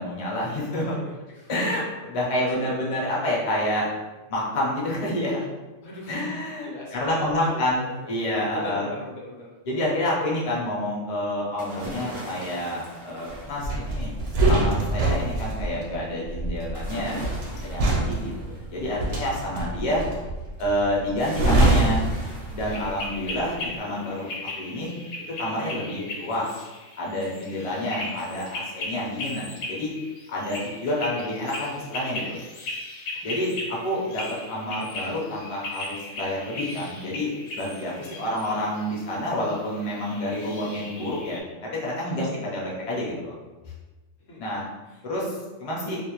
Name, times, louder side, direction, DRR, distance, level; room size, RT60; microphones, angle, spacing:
voice 1, 0.0-1.0 1.5-3.9 4.3-5.4 6.1-8.9 9.7-14.1 14.5-17.3 17.6-20.0 20.6-22.1 22.5-24.3 24.6-24.9 25.4-26.5 27.0-29.9 30.3-32.4 33.2-43.3 44.4-44.6 45.0-46.0, left 1 dB, 40° left, -5 dB, 0.5 m, -28 dB
voice 2, 0.9-1.5 2.2-2.6 5.8-6.2 6.6-7.9 8.5-9.5 18.7-19.0 27.4-27.7 33.3-33.5 38.0-38.4 38.7-39.3 42.0-42.3 44.2-45.0, left 1 dB, 65° left, -4 dB, 0.9 m, -41 dB
sound 1, 11.6-14.4 16.7-19.4 21.2-23.5 23.9-24.0, right 1 dB, 40° right, 0.5 m, -40 dB
sound 2, 13.6-23.0 23.3-23.6, right 2 dB, 70° right, 0.9 m, -25 dB
sound 3, 22.6-41.4, left 2 dB, 90° left, 1.0 m, -37 dB
2.4 x 2.0 x 2.9 m, 1.2 s
omnidirectional pair, 1.3 m